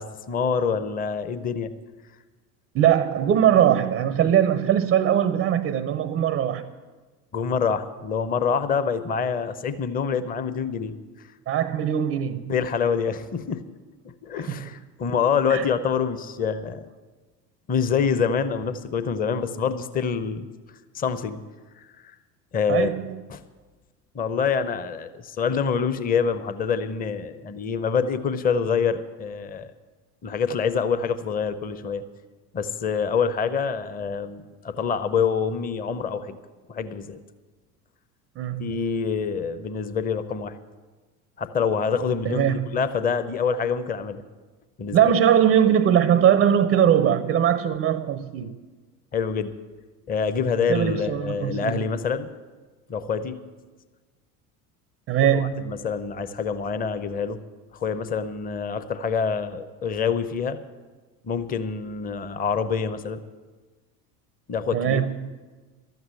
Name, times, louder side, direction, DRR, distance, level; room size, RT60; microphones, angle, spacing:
voice 1, 0.0-1.7 7.3-11.0 12.5-13.6 14.0-16.8 17.7-20.5 20.9-21.4 22.0-22.1 22.5-22.9 23.3-23.4 24.1-29.7 30.2-32.0 32.5-36.4 36.7-37.2 38.6-40.5 41.4-44.2 44.8-45.1 49.1-49.5 50.1-52.3 52.9-53.4 55.2-57.4 57.7-60.6 61.2-63.2 64.5-65.0, left 6 dB, 20° left, 0.6 m, -26 dB
voice 2, 2.7-6.7 11.5-12.5 14.5-14.6 15.5-15.7 22.7-23.2 38.4-38.7 42.2-42.7 44.9-48.6 50.7-51.9 55.1-55.7 64.7-65.3, right 9 dB, 25° right, 0.5 m, -21 dB
12.5 x 8.0 x 8.8 m
figure-of-eight pair, 75°, 47 cm